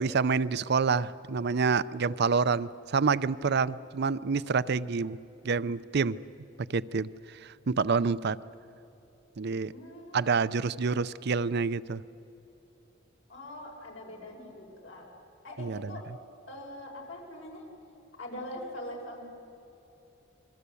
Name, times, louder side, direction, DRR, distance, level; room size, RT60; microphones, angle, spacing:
voice 1, 0.0-5.2 5.4-6.2 6.7-8.4 9.4-9.7 10.1-12.0 15.6-15.8, right 5 dB, 55° right, 15 dB, 0.5 m, -27 dB
voice 2, 9.7-10.3 13.3-15.1 15.4-16.1 16.5-17.7 18.2-19.2, left 1 dB, 75° left, 0 dB, 5.5 m, -42 dB
27.0 x 22.0 x 8.4 m, 3.0 s
head